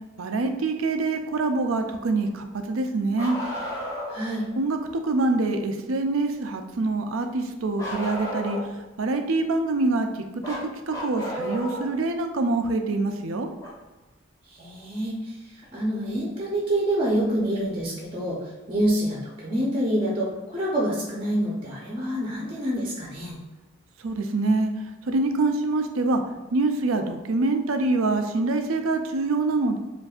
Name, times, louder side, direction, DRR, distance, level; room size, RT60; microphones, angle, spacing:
voice 1, 0.2-3.4 4.6-8.6 9.0-10.1 10.5-13.5 24.0-24.7 25.1-26.2 26.5-29.8, right 3 dB, 90° right, 6 dB, 0.5 m, -25 dB
Bark, 3.1-4.2 7.8-8.8 10.4-11.9 13.6-13.7 15.6-15.7 16.8-16.9, equal, 15° left, 0.9 m, -33 dB
voice 2, 4.1-4.5 14.5-23.4, right 1 dB, 25° right, -4 dB, 0.7 m, -27 dB
7.5 x 2.6 x 2.4 m, 1.1 s
head